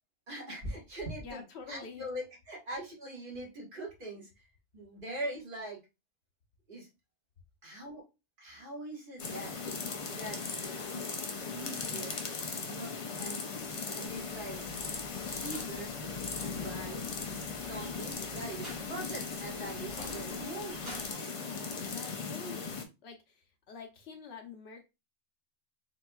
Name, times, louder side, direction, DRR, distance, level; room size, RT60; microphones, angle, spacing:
voice 1, 0.3-4.4 4.7-5.8 6.7-6.9 7.6-8.0 8.4-9.5 10.1-10.4 10.9-11.1 11.5-12.2 12.6-12.9 13.2-13.4 13.9-14.6 15.2-15.9 16.4-17.1 17.6-20.8, right 1 dB, 45° right, -3 dB, 1.6 m, -42 dB
voice 2, 1.2-2.0 21.8-24.8, left 5 dB, 65° left, 3 dB, 1.0 m, -47 dB
sound 1, 9.2-22.8, left 4 dB, 45° left, 0.4 m, -38 dB
sound 2, 14.3-21.1, left 1 dB, 65° right, 2.0 m, -51 dB
3.9 x 2.7 x 2.2 m, 0.26 s
omnidirectional pair, 1.2 m